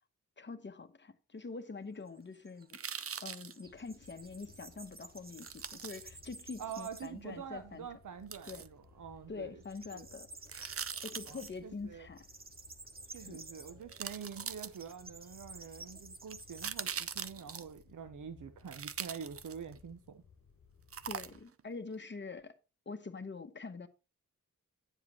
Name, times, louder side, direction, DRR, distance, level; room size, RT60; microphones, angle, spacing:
voice 1, 0.4-2.8 3.2-7.9 8.5-8.6 9.3-10.3 11.0-12.3 13.1-13.4 21.1-22.5 22.9-23.9, left 4 dB, 35° left, 0.9 m, -45 dB
sound 1, 1.4-7.3 7.6-7.7 8.1-8.9 9.2-17.7, right 3 dB, 30° right, 0.9 m, -53 dB
sound 2, 2.7-3.5 5.4-6.0 8.3-8.7 10.5-11.5 13.2-13.3 13.9-15.1 16.3-17.8 18.7-19.8 20.9-21.6 21.9-22.0, right 7 dB, 50° right, 0.5 m, -42 dB
sound 3, 3.6-21.4, left 5 dB, 75° left, 1.1 m, -61 dB
voice 2, 6.6-9.6 9.9-10.1 11.3-12.1 13.1-20.2, right 7 dB, 85° right, 0.7 m, -46 dB
10.0 x 7.3 x 3.0 m
wide cardioid pair, 110°, 30 cm